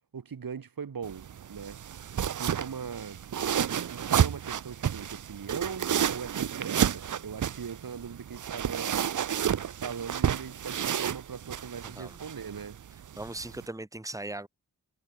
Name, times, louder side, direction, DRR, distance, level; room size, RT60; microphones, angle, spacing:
voice 1, 0.1-1.8 2.4-3.2 3.9-9.0 9.8-12.8, right 6 dB, 85° right, 3.6 m, -40 dB
sound 1, 1.0-13.7, right 9 dB, 65° right, 0.6 m, -31 dB
voice 2, 11.8-12.2 13.2-14.5, right 2 dB, 10° right, 1.6 m, -38 dB
wide cardioid pair, 70°, 34 cm